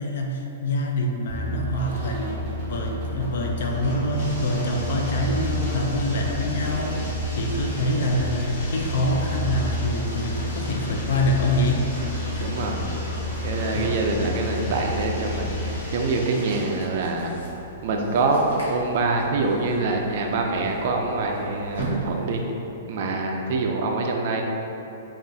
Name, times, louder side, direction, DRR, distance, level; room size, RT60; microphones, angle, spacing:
voice 1, 0.0-12.5 13.7-14.0, left 1 dB, 55° left, 2 dB, 0.4 m, -26 dB
sound 1, 1.3-15.8, equal, 25° right, 1.1 m, -30 dB
Bathtub (filling or washing), 3.3-16.9, left 1 dB, 40° left, 0.8 m, -39 dB
voice 2, 12.4-12.9 13.4-17.4 17.8-18.4 18.7-22.4 22.9-24.4, right 3 dB, 40° right, 2 dB, 0.3 m, -25 dB
sound 2, 16.3-22.6, right 1 dB, 85° left, 1.3 m, -37 dB
5.2 x 2.4 x 2.6 m, 3.0 s
hypercardioid pair, 175°, 0 cm